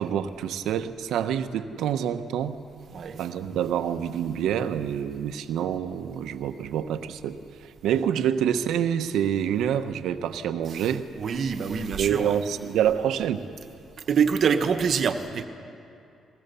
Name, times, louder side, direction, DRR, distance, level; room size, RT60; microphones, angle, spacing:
voice 1, 0.0-2.6 3.2-11.1 12.0-13.5, right 9 dB, 85° right, 10 dB, 1.0 m, -27 dB
voice 2, 2.9-3.2 10.7-10.9 11.2-12.4 14.1-15.5, right 6 dB, 55° right, 7 dB, 1.4 m, -25 dB
22.5 x 19.5 x 7.0 m, 2.7 s
cardioid pair, 90°, 0 cm